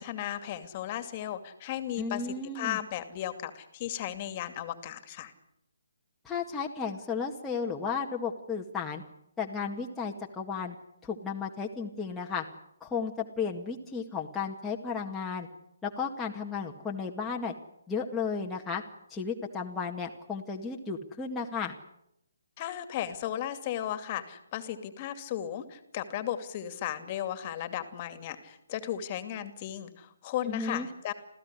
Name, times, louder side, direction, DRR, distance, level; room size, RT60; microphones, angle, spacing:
voice 1, 0.0-5.3 22.6-31.1, left 11 dB, 35° left, 10 dB, 2.5 m, -35 dB
voice 2, 2.0-2.8 6.2-9.0 9.4-10.8 11.0-12.5 12.8-15.5 15.8-17.5 17.9-18.8 19.1-21.8 30.5-30.9, left 5 dB, 10° left, -2 dB, 2.0 m, -34 dB
27.0 x 16.0 x 9.9 m, 0.79 s
figure-of-eight pair, 145°, 0 cm